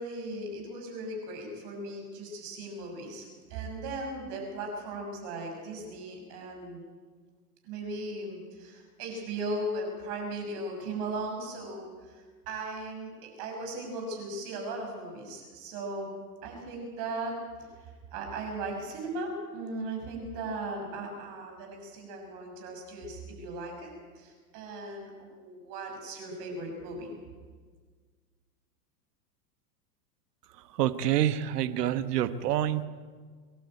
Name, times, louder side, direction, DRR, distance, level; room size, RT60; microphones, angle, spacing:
voice 1, 0.0-6.8 7.6-16.1 16.4-27.2, right 2 dB, 45° right, 2 dB, 6.8 m, -37 dB
voice 2, 30.8-32.9, right 11 dB, 70° right, 12 dB, 1.4 m, -27 dB
24.5 x 12.0 x 9.1 m, 1.5 s
hypercardioid pair, 125°, 49 cm